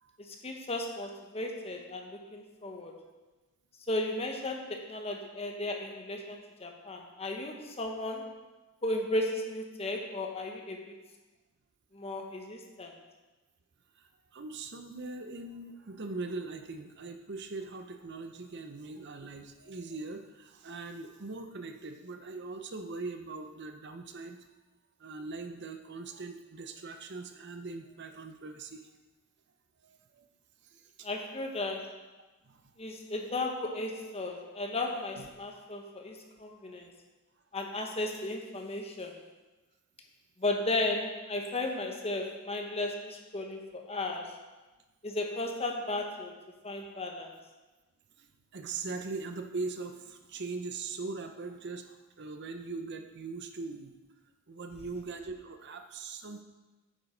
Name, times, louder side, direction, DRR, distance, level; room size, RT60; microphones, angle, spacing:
voice 1, 0.3-2.9 3.9-8.3 8.8-11.0 11.9-12.9 31.0-31.9 32.8-36.9 37.5-39.2 40.4-44.3 45.0-46.3 46.6-47.3, left 2 dB, 30° left, 2 dB, 1.2 m, -35 dB
voice 2, 14.0-24.4 25.0-28.9 29.8-30.3 30.6-31.1 32.5-32.6 35.2-35.3 36.8-36.9 48.2-53.9 54.5-56.4, right 3 dB, 55° right, 6 dB, 0.7 m, -41 dB
9.2 x 7.5 x 5.1 m, 1.2 s
head